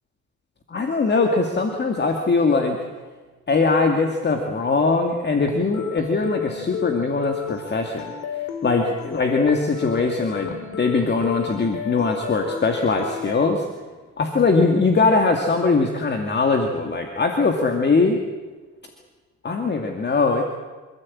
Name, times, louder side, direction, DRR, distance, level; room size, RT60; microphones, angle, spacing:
voice 1, 0.7-2.8 3.5-8.1 8.6-13.7 14.2-18.2 19.4-20.4, left 3 dB, 35° left, 4 dB, 2.3 m, -21 dB
sound 1, 5.4-13.4, left 9 dB, 80° left, 2.6 m, -33 dB
26.5 x 15.0 x 8.7 m, 1.3 s
cardioid pair, 90°, 30 cm